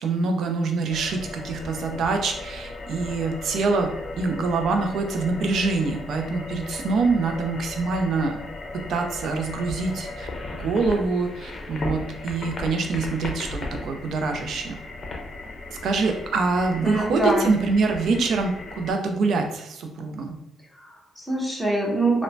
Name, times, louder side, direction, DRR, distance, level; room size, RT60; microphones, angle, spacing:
voice 1, 0.0-8.4 8.7-10.3 10.6-14.8 15.8-20.4, right 4 dB, 70° right, 4 dB, 0.4 m, -25 dB
sound 1, 0.9-18.9, left 2 dB, 45° left, 0.5 m, -37 dB
voice 2, 16.8-17.5 18.1-18.2 20.8-22.2, right 2 dB, 5° right, -3 dB, 0.8 m, -24 dB
3.0 x 2.0 x 2.5 m, 0.84 s
cardioid pair, 90°, 0 cm